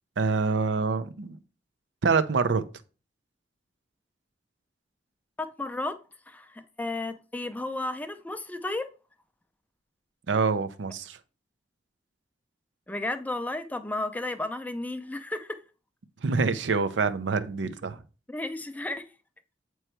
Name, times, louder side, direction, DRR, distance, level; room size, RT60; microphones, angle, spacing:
voice 1, 0.2-1.4 2.0-2.6 10.3-11.2 16.2-18.0, right 4 dB, 85° right, 0.6 m, -26 dB
voice 2, 5.4-6.0 6.3-8.9 12.9-15.5 18.3-19.0, left 2 dB, 10° left, 0.4 m, -33 dB
7.8 x 3.1 x 4.4 m
head